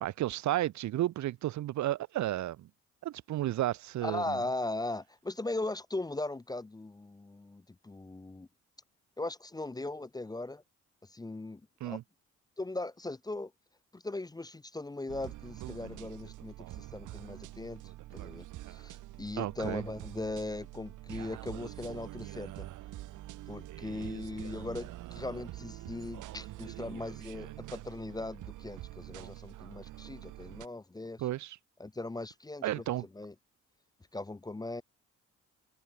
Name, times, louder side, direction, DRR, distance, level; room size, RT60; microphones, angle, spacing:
voice 1, 0.0-2.7 3.0-4.4 11.8-12.0 19.4-19.8 31.2-31.6 32.6-33.1, right 14 dB, 70° right, 0.8 m, -32 dB
voice 2, 4.0-8.5 9.2-10.6 11.1-12.0 12.6-13.5 13.9-17.8 18.1-22.7 23.5-31.2 31.8-32.8 33.1-33.3 34.1-34.8, left 2 dB, 15° left, 0.7 m, -39 dB
sound 1, 15.1-30.7, right 15 dB, 85° right, 2.7 m, -45 dB
cardioid pair, 90°, 30 cm